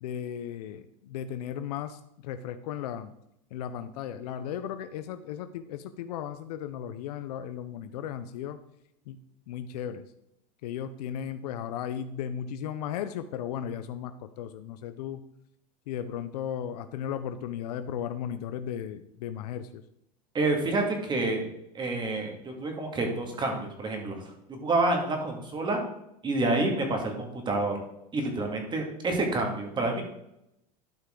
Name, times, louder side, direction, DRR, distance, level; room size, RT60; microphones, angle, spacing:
voice 1, 0.0-3.1 3.5-8.6 9.1-9.2 9.5-10.0 10.6-15.2 15.9-19.8, left 9 dB, 85° left, 10 dB, 0.6 m, -36 dB
voice 2, 20.3-21.5 21.7-25.8 26.2-27.8 28.1-30.0, right 2 dB, 25° right, 3 dB, 2.2 m, -28 dB
12.0 x 5.7 x 3.8 m, 0.82 s
supercardioid pair, 135°, 20 cm